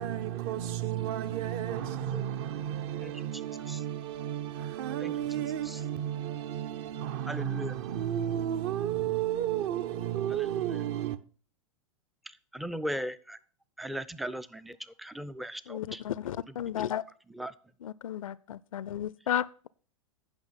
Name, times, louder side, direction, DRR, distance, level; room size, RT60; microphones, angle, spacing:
voice 1, 0.0-11.2, right 11 dB, 50° right, 0.7 m, -32 dB
voice 2, 7.3-7.7 12.5-13.4 13.8-16.0 16.8-16.9 17.4-17.5, equal, ahead, 0.3 m, -37 dB
voice 3, 15.7-17.0 17.8-19.7, left 10 dB, 75° left, 0.4 m, -33 dB
9.0 x 5.7 x 5.5 m
hypercardioid pair, 105°, 18 cm